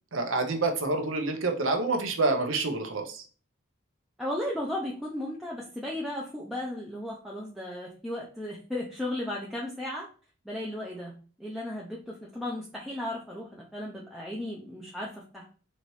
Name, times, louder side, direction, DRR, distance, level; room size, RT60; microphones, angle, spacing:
voice 1, 0.1-3.2, right 3 dB, 70° right, 5 dB, 0.8 m, -27 dB
voice 2, 4.2-10.1 10.5-15.5, left 1 dB, ahead, -4 dB, 0.4 m, -35 dB
4.0 x 3.0 x 3.1 m, 0.39 s
head